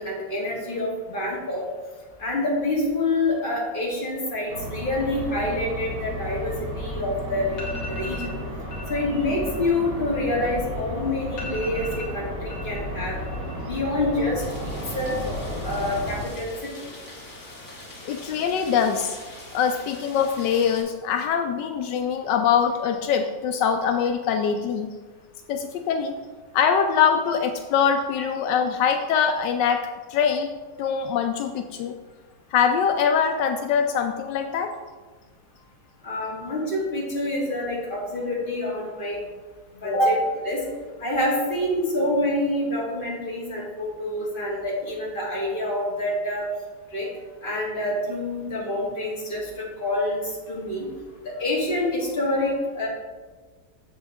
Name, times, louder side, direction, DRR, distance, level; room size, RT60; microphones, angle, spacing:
voice 1, 0.0-1.6 2.2-8.4 8.9-13.2 13.7-16.7 36.0-39.2 39.7-40.6 41.0-46.5 46.9-47.1 47.4-50.9 51.2-52.9, left 1 dB, 30° left, -5 dB, 2.1 m, -27 dB
sound 1, 4.5-16.3, equal, 80° right, 2.3 m, -33 dB
sound 2, 7.6-8.3 8.7-9.0 9.3-10.8 11.1-11.2 11.4-12.8 13.1-13.7 14.0-14.5, left 1 dB, 65° left, 2.3 m, -39 dB
Rain, 14.4-20.8, left 1 dB, 10° left, 1.4 m, -43 dB
voice 2, 18.0-19.2 19.5-24.9 25.5-26.2 26.5-29.8 30.1-30.5 30.8-32.0 32.5-34.7 39.8-40.0, left 7 dB, 80° left, 6 dB, 1.2 m, -23 dB
7.8 x 7.3 x 3.5 m, 1.4 s
omnidirectional pair, 1.9 m